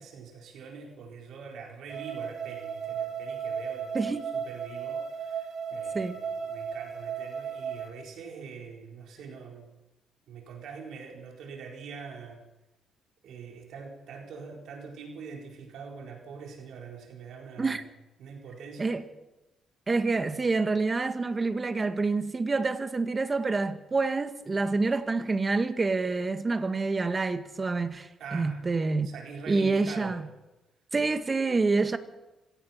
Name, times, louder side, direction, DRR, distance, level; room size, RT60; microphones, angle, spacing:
voice 1, 0.0-4.0 4.3-9.8 10.3-12.5 13.2-17.9 18.2-19.0 28.2-28.6 29.0-30.2, right 5 dB, 75° right, 4.4 m, -44 dB
sound 1, 1.9-7.9, right 7 dB, 60° right, 5.4 m, -35 dB
voice 2, 19.9-29.1 29.5-30.3 30.9-32.0, right 3 dB, 30° right, 1.9 m, -27 dB
26.0 x 17.5 x 5.8 m
cardioid pair, 90°, 0 cm